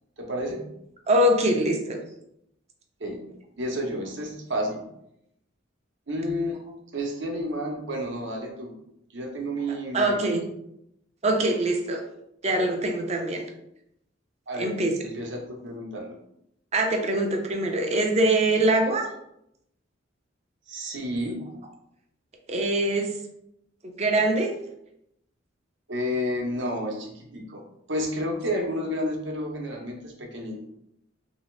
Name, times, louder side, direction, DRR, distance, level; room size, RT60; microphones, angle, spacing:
voice 1, 0.2-0.6 3.0-3.2 3.6-4.8 6.1-6.6 6.9-8.7 9.1-10.3 14.5-14.8 15.0-16.2 20.7-21.4 25.9-27.6 27.9-30.6, equal, 65° right, 1 dB, 0.8 m, -31 dB
voice 2, 1.1-2.0 9.9-10.4 11.2-12.0 12.4-13.4 14.6-14.9 16.7-19.1 22.5-23.1 24.0-24.5, right 1 dB, 35° right, 3 dB, 0.5 m, -23 dB
3.2 x 2.7 x 3.1 m, 0.79 s
head